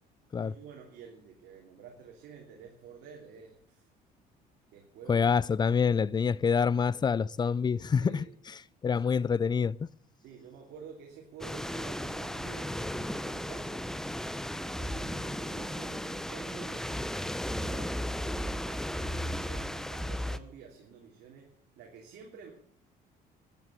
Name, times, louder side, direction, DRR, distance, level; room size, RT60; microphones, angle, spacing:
voice 1, 0.4-3.9 4.7-5.3 7.8-8.3 10.2-13.8 14.5-17.1 17.7-22.5, right 7 dB, 80° right, 3.1 m, -50 dB
voice 2, 5.1-8.2 8.8-9.8, left 6 dB, 25° left, 0.5 m, -26 dB
sound 1, 11.4-20.4, equal, 5° left, 0.8 m, -35 dB
14.0 x 9.5 x 8.1 m
cardioid pair, 110°, 17 cm